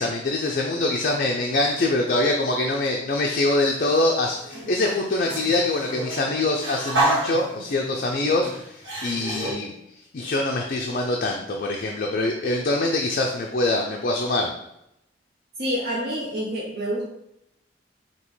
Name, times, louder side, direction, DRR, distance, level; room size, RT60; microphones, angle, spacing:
voice 1, 0.0-9.7 10.1-14.5, left 2 dB, 45° left, 0 dB, 0.4 m, -24 dB
sound 1, 3.4-4.0 4.4-9.5, right 2 dB, 85° right, 1.6 m, -29 dB
voice 2, 15.6-17.1, equal, 55° right, -4 dB, 0.7 m, -27 dB
5.2 x 2.8 x 3.1 m, 0.81 s
head